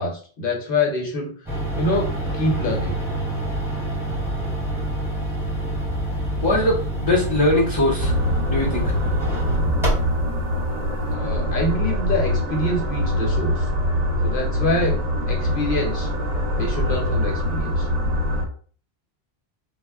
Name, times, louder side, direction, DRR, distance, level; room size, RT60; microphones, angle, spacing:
voice 1, 0.0-2.1 2.3-3.0 11.1-13.7 14.2-15.0 15.3-16.1 16.5-17.9, left 1 dB, 55° left, 0 dB, 1.0 m, -25 dB
sound 1, 1.5-10.4, right 1 dB, 5° right, 0.8 m, -27 dB
voice 2, 6.4-8.1 8.5-8.9, left 1 dB, 35° left, -6 dB, 0.5 m, -21 dB
sound 2, 8.0-18.5, left 1 dB, 50° right, 0.6 m, -23 dB
2.0 x 2.0 x 3.4 m, 0.43 s
omnidirectional pair, 1.1 m